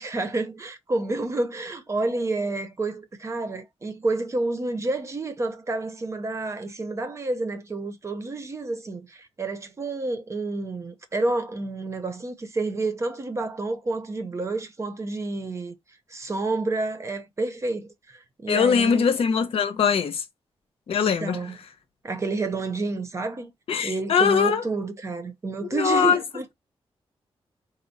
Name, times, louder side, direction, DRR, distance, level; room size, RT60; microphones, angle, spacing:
voice 1, 0.0-15.7 16.1-19.1 21.0-21.5 22.0-23.5 23.8-26.5, right 2 dB, 30° right, 0.7 m, -29 dB
voice 2, 18.5-20.2 20.9-21.4 23.7-24.6 25.7-26.2, left 6 dB, 70° left, 0.8 m, -21 dB
4.3 x 2.1 x 3.9 m
wide cardioid pair, 165°, 10 cm